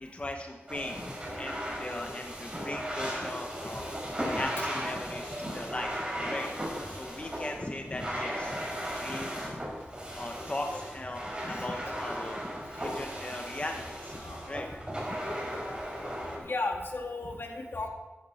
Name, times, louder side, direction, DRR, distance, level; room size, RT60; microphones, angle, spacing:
voice 1, 0.0-6.5 6.9-8.6 8.9-9.8 10.1-14.2 14.5-14.7 15.3-15.4, left 1 dB, 30° left, 3 dB, 1.2 m, -38 dB
sound 1, 0.7-16.4, equal, 25° right, 4.6 m, -36 dB
voice 2, 14.2-14.8 16.4-17.9, left 3 dB, 65° left, 2 dB, 1.9 m, -35 dB
13.5 x 13.5 x 4.4 m, 1.2 s
wide cardioid pair, 90°, 4 cm